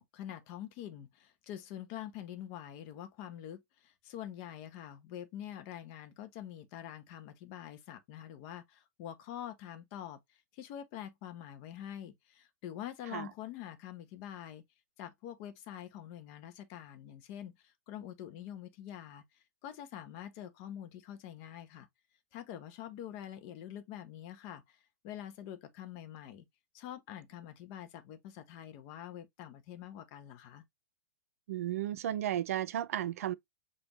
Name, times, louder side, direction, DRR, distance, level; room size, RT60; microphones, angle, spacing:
voice 1, 0.0-14.6 15.0-21.9 22.3-24.8 25.0-26.4 26.7-30.6, left 11 dB, 45° left, 1.0 m, -46 dB
voice 2, 31.5-33.3, right 11 dB, 65° right, 0.5 m, -34 dB
5.2 x 2.8 x 2.9 m
hypercardioid pair, 120°, 8 cm